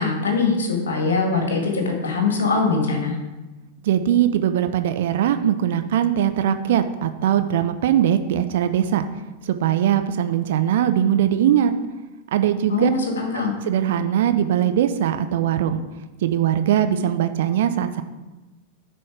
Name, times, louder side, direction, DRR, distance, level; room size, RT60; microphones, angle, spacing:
voice 1, 0.0-3.2 12.7-13.5, left 4 dB, 65° left, 2 dB, 1.8 m, -22 dB
voice 2, 3.8-9.1 9.5-11.7 12.3-12.9 13.7-15.8 16.2-18.0, right 10 dB, 55° right, 9 dB, 0.4 m, -20 dB
10.0 x 4.3 x 4.8 m, 1.1 s
figure-of-eight pair, 90°, 0 cm